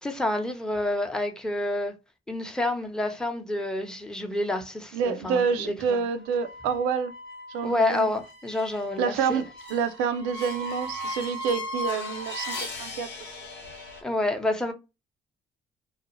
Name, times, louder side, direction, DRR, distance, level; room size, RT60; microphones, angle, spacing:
voice 1, 0.0-1.9 2.3-6.0 7.6-9.4 14.0-14.7, left 2 dB, 5° left, 0.7 m, -28 dB
voice 2, 4.9-7.1 7.5-8.1 9.0-12.5 12.8-13.4, right 6 dB, 85° right, 0.4 m, -28 dB
sound 1, 6.3-14.0, equal, 80° left, 0.9 m, -37 dB
2.3 x 2.1 x 3.0 m
supercardioid pair, 65°, 18 cm